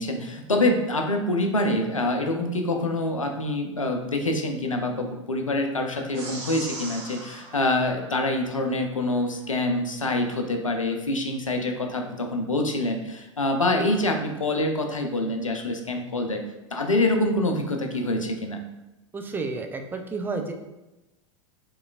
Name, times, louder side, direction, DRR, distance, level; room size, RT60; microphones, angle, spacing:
voice 1, 0.0-16.4 16.7-18.6, left 1 dB, 85° left, 4 dB, 0.6 m, -26 dB
sound 1, 6.1-8.8, right 2 dB, 40° right, 1.2 m, -40 dB
voice 2, 19.1-20.5, right 3 dB, 10° right, 4 dB, 0.3 m, -31 dB
4.7 x 3.1 x 2.4 m, 1.0 s
figure-of-eight pair, 90°, 16 cm